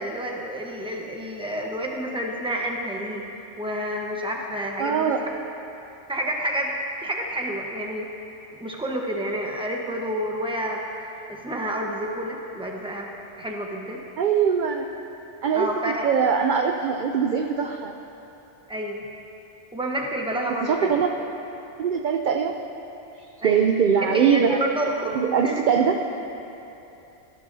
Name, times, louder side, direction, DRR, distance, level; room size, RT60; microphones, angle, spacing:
voice 1, 0.0-3.2 3.6-5.1 6.1-6.7 7.0-8.1 8.6-13.1 13.4-14.0 15.5-16.1 18.7-19.0 19.7-21.0 23.4-23.6 24.1-25.7, right 1 dB, 5° right, -1 dB, 1.0 m, -29 dB
voice 2, 4.8-5.3 14.2-14.9 15.4-15.7 16.0-17.9 20.6-21.1 21.8-22.5 23.4-24.6 25.1-26.0, right 7 dB, 55° right, 4 dB, 0.6 m, -22 dB
18.0 x 11.0 x 2.7 m, 3.0 s
omnidirectional pair, 1.2 m